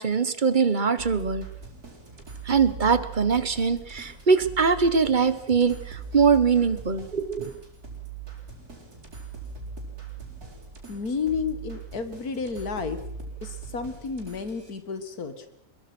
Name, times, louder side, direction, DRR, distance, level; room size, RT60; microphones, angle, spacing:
voice 1, 0.0-1.5 2.4-7.5, right 5 dB, 35° right, 13 dB, 1.3 m, -22 dB
sound 1, 1.0-14.7, right 5 dB, 75° right, 5.3 m, -41 dB
voice 2, 10.9-13.0 13.4-15.5, left 5 dB, 75° left, 10 dB, 2.1 m, -31 dB
23.5 x 22.5 x 6.1 m, 0.75 s
omnidirectional pair, 1.6 m